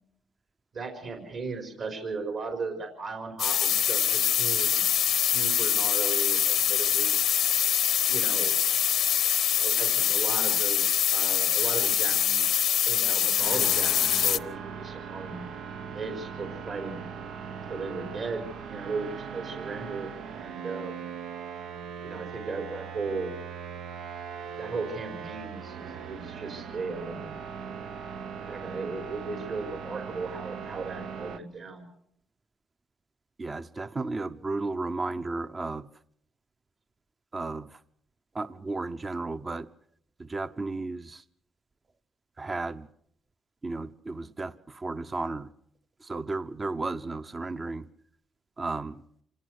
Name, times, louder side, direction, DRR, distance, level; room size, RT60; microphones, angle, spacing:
voice 1, 0.7-4.8 5.3-7.2 8.1-8.5 9.5-12.6 12.8-15.4 15.9-17.1 17.7-20.1 20.3-21.1 22.0-23.3 24.6-27.4 28.4-31.9, right 4 dB, 60° right, 4 dB, 4.7 m, -36 dB
sound 1, 3.4-14.4, left 10 dB, 70° left, 0.8 m, -24 dB
sound 2, 13.4-31.4, right 6 dB, 80° right, 1.1 m, -39 dB
voice 2, 33.4-35.9 37.3-37.8 38.3-39.7 40.2-41.2 42.4-42.9 43.6-45.5 46.0-47.9 48.6-49.0, right 3 dB, 30° right, 11 dB, 0.8 m, -33 dB
26.5 x 18.0 x 6.5 m, 0.69 s
cardioid pair, 90°, 0 cm